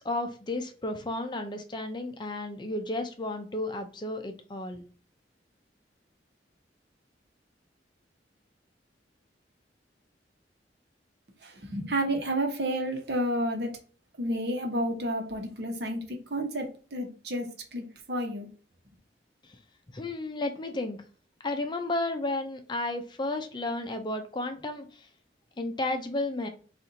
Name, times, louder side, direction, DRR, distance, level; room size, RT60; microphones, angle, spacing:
voice 1, 0.0-4.8 19.9-21.0 21.4-25.1 25.6-26.5, left 2 dB, 25° left, 6 dB, 0.5 m, -33 dB
voice 2, 11.4-13.7 14.2-17.5 17.7-18.5, right 1 dB, 60° right, 2 dB, 1.0 m, -31 dB
4.2 x 2.5 x 3.9 m, 0.40 s
head